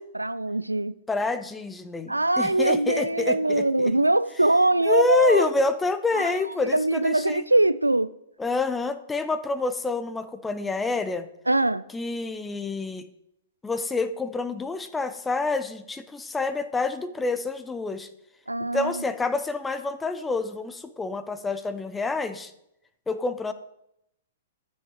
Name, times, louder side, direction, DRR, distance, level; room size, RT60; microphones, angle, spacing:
voice 1, 0.1-0.9 2.1-5.5 6.1-6.4 6.6-8.1 11.5-11.8 18.5-19.0, right 2 dB, 90° right, 0.4 m, -22 dB
voice 2, 1.1-3.9 4.9-7.4 8.4-11.3 11.9-13.1 13.6-18.1 18.6-22.5 23.1-23.5, left 3 dB, 10° left, 0.7 m, -27 dB
14.5 x 6.4 x 3.0 m
figure-of-eight pair, 110°, 0 cm